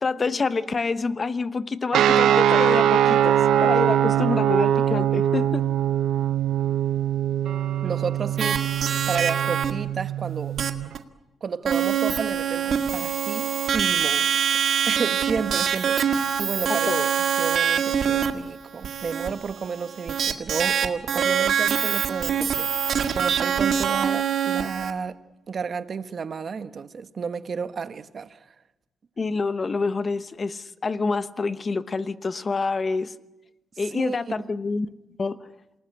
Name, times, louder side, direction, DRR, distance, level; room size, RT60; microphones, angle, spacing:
voice 1, 0.0-3.4 3.6-5.7 16.9-17.1 29.2-33.1 33.8-34.9 35.2-35.4, left 4 dB, 30° left, 1.0 m, -27 dB
sound 1, 1.9-10.9, right 10 dB, 80° right, 1.0 m, -22 dB
voice 2, 7.8-8.7 9.1-10.6 11.4-14.6 14.9-16.9 17.1-25.2 25.5-28.5 33.9-34.2, right 5 dB, 40° right, 1.1 m, -32 dB
sound 2, 8.4-9.7 10.6-10.7 10.9-11.0 11.7-24.9, right 8 dB, 55° right, 2.0 m, -24 dB
27.5 x 19.5 x 9.9 m
cardioid pair, 135°, 0 cm